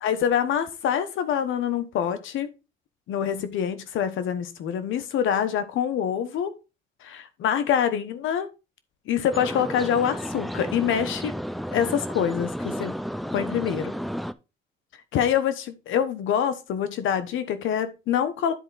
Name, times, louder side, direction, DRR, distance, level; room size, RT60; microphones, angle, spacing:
voice 1, 0.0-2.5 3.1-6.5 7.0-8.5 9.1-11.3 11.7-13.0 13.3-13.9 15.1-18.5, left 9 dB, 80° left, 1.1 m, -25 dB
sound 1, 9.3-14.3, equal, ahead, 0.5 m, -32 dB
9.9 x 4.4 x 3.9 m
cardioid pair, 90°, 20 cm